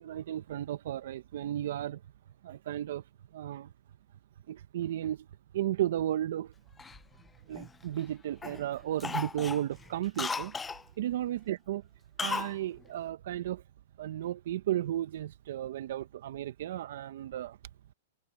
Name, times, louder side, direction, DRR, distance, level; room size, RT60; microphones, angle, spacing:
voice 1, 0.0-2.0 2.4-3.0 3.3-3.7 4.5-5.2 5.5-6.5 7.5-10.5 11.0-11.8 12.2-13.6 14.0-17.6, right 12 dB, 70° right, 0.7 m, -34 dB
Cough, 6.8-8.1 8.4-8.6 9.0-10.8 12.2-12.6 12.8-12.9, left 5 dB, 10° left, 0.5 m, -36 dB
hypercardioid pair, 140°, 0 cm